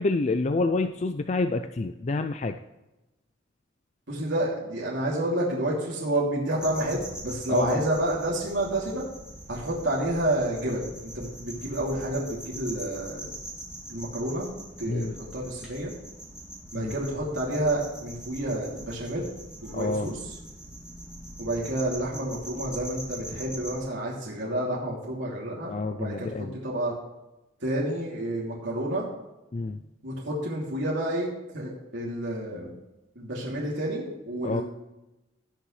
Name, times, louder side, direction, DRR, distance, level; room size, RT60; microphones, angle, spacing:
voice 1, 0.0-2.6 7.5-7.8 14.9-15.1 16.7-16.9 19.7-20.1 25.7-26.6 29.5-29.8 34.4-34.6, left 3 dB, 35° left, 8 dB, 0.4 m, -28 dB
voice 2, 4.1-9.0 9.5-13.3 13.9-14.5 14.8-15.9 16.7-19.2 19.6-20.2 21.4-26.3 26.6-26.9 27.6-29.1 30.0-31.3 31.5-32.7 33.2-34.6, right 1 dB, 70° right, -5 dB, 2.9 m, -29 dB
sound 1, 6.6-23.8, right 1 dB, 5° right, 2.8 m, -42 dB
18.0 x 6.6 x 3.2 m, 1.0 s
head